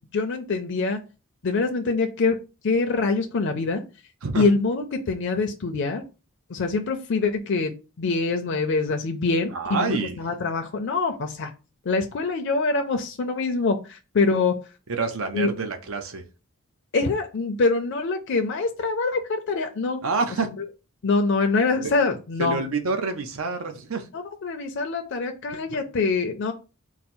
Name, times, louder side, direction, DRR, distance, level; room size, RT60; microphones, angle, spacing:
voice 1, 0.1-1.0 1.4-2.4 2.6-3.8 4.4-6.0 6.5-7.7 8.0-11.5 11.9-14.6 15.3-15.5 16.9-20.0 21.0-22.6 24.1-26.5, left 3 dB, 60° left, 5 dB, 0.5 m, -24 dB
voice 2, 9.5-10.2 14.9-16.2 20.0-20.5 21.8-22.0 22.4-24.1 25.7-25.8, right 4 dB, 80° right, 7 dB, 0.7 m, -27 dB
4.0 x 2.0 x 4.3 m, 0.31 s
head